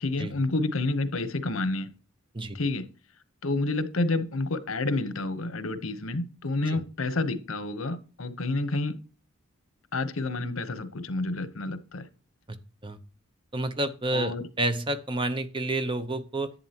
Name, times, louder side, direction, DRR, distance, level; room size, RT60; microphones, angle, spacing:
voice 1, 0.0-1.9 2.5-2.9 3.4-9.0 9.9-12.1 14.1-14.5, left 2 dB, 75° left, 12 dB, 1.0 m, -29 dB
voice 2, 13.5-16.5, right 2 dB, 25° right, 10 dB, 0.8 m, -29 dB
11.0 x 8.3 x 2.9 m, 0.35 s
head